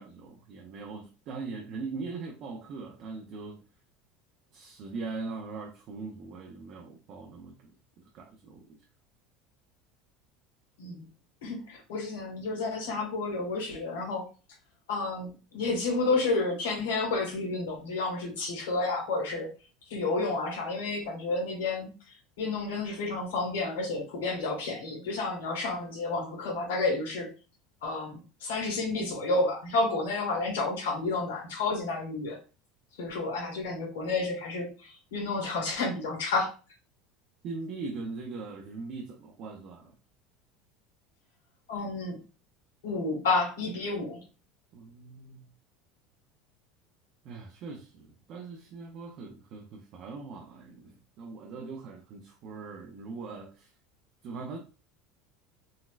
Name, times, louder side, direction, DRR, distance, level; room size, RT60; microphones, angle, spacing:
voice 1, 0.0-3.6 4.5-7.7 8.1-8.8 37.4-39.9 44.7-45.5 47.2-53.7 54.2-54.6, right 4 dB, 55° right, 0.5 m, -41 dB
voice 2, 11.4-14.2 14.9-19.5 19.9-21.9 22.4-27.3 27.8-32.4 33.0-36.5 41.7-42.2 42.8-44.2, left 3 dB, 90° left, 1.6 m, -30 dB
4.0 x 2.1 x 2.4 m
supercardioid pair, 110°, 0 cm